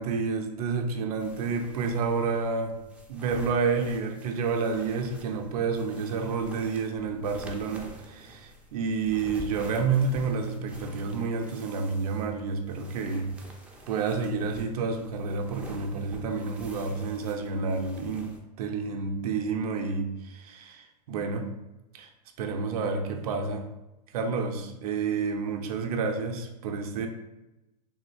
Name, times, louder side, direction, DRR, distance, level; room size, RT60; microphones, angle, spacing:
voice 1, 0.0-2.7 3.1-13.3 13.9-21.5 21.9-22.1 22.4-23.7 24.1-27.1, right 4 dB, 65° right, 4 dB, 0.5 m, -29 dB
sound 1, 1.2-18.4, right 1 dB, 5° right, 0.4 m, -48 dB
3.3 x 2.2 x 3.1 m, 0.96 s
hypercardioid pair, 120°, 21 cm